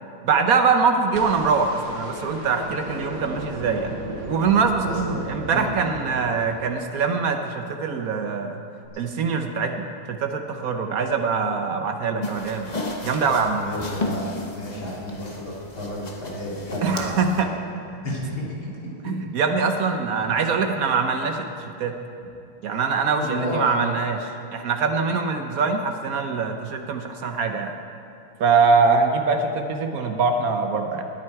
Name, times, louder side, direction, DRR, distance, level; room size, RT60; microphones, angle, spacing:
voice 1, 0.2-3.9 4.3-8.6 9.0-12.7 13.0-13.6 16.8-17.5 19.0-21.9 22.6-27.7 28.4-31.0, right 5 dB, 60° right, 5 dB, 0.9 m, -23 dB
sound 1, 1.1-7.3 8.8-8.9, right 2 dB, 80° right, 2.4 m, -36 dB
voice 2, 4.8-5.2 5.5-5.6 13.5-17.5 18.0-18.5 19.0-19.1 23.2-23.6, left 1 dB, 65° left, -5 dB, 3.3 m, -31 dB
sound 2, 12.2-17.4, left 2 dB, 30° left, 0.7 m, -33 dB
19.5 x 8.9 x 4.6 m, 2.7 s
omnidirectional pair, 2.3 m